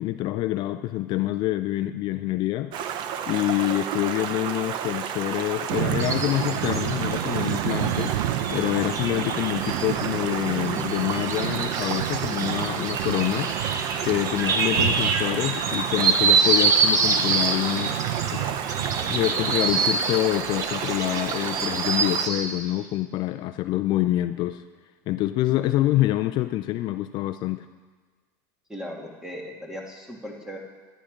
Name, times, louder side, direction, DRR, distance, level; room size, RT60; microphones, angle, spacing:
voice 1, 0.0-2.7 3.2-8.2 8.5-13.5 14.0-18.5 19.1-24.6 25.1-27.7, left 15 dB, 50° left, 11 dB, 0.4 m, -26 dB
Stream, 2.7-22.3, right 8 dB, 50° right, 0.8 m, -32 dB
sound 1, 5.7-20.0, right 11 dB, 80° right, 0.7 m, -31 dB
sound 2, 6.0-22.6, right 4 dB, 35° right, 1.2 m, -27 dB
voice 2, 28.7-30.6, equal, 5° right, 0 dB, 2.0 m, -37 dB
13.0 x 10.0 x 5.1 m, 1.4 s
supercardioid pair, 120°, 10 cm